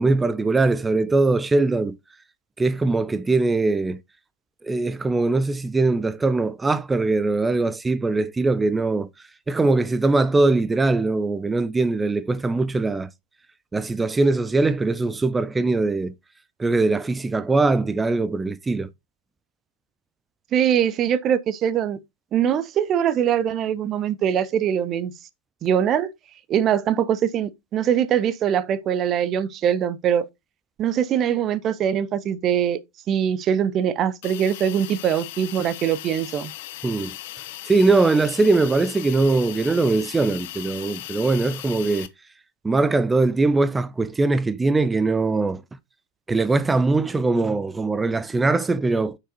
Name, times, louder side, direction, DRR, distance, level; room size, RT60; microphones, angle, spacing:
voice 1, 0.0-2.0 2.6-4.0 4.6-9.1 9.5-13.1 13.7-16.1 16.6-18.9 36.8-37.1 37.7-42.1 42.6-45.6 46.3-49.2, right 3 dB, 10° right, 0.5 m, -21 dB
voice 2, 20.5-22.0 22.3-25.1 25.6-26.1 26.5-30.3 30.8-32.8 33.1-36.5, right 9 dB, 30° right, 0.8 m, -22 dB
Hiss, 34.2-42.1, left 14 dB, 50° left, 0.7 m, -38 dB
8.2 x 5.9 x 2.9 m
figure-of-eight pair, 90°, 0 cm